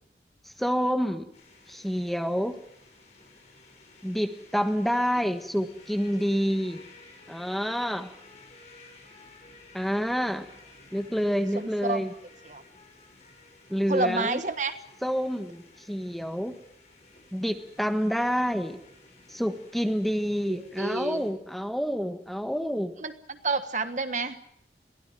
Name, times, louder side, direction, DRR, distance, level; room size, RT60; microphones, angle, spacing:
voice 1, 0.6-1.3 1.7-2.6 4.0-6.8 7.3-8.1 9.7-10.5 10.9-12.1 13.7-14.4 15.0-15.6 15.9-16.5 17.3-18.8 19.3-22.9, equal, ahead, 7 dB, 1.5 m, -28 dB
sound 1, 1.3-21.3, left 3 dB, 40° left, 6.5 m, -54 dB
voice 2, 11.5-12.0 12.5-12.6 13.9-14.8 20.5-21.2 23.0-24.5, right 3 dB, 45° right, 10 dB, 1.4 m, -30 dB
23.0 x 16.5 x 9.2 m, 0.70 s
head